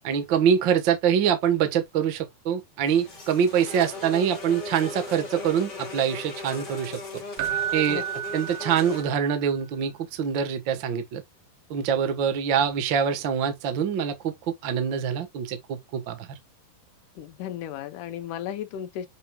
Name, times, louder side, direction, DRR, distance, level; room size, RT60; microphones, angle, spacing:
voice 1, 0.0-7.2 7.7-8.0 8.3-11.2 11.7-14.3 14.6-16.3, right 8 dB, 55° right, 1.3 m, -25 dB
sound 1, 2.9-9.0, left 3 dB, 30° left, 3.2 m, -38 dB
Keyboard (musical), 7.4-9.3 12.6-12.8, right 11 dB, 85° right, 2.8 m, -31 dB
voice 2, 17.2-19.1, left 10 dB, 70° left, 2.2 m, -34 dB
7.9 x 5.2 x 2.3 m
omnidirectional pair, 4.2 m